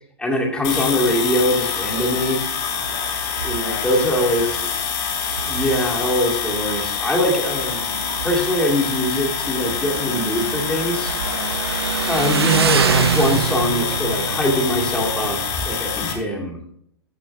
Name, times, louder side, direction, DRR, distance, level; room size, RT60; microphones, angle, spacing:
voice 1, 0.2-2.4 3.4-4.6 5.4-11.1 12.1-15.4 15.7-16.6, left 1 dB, 5° left, -3 dB, 2.3 m, -22 dB
sound 1, 0.6-16.1, left 7 dB, 40° left, 2.1 m, -26 dB
voice 2, 2.6-4.6 11.3-11.6, left 3 dB, 65° left, -2 dB, 2.7 m, -38 dB
Motorcycle, 2.8-15.7, right 7 dB, 70° right, 0.7 m, -27 dB
14.0 x 5.5 x 3.6 m, 0.69 s
figure-of-eight pair, 105°, 13 cm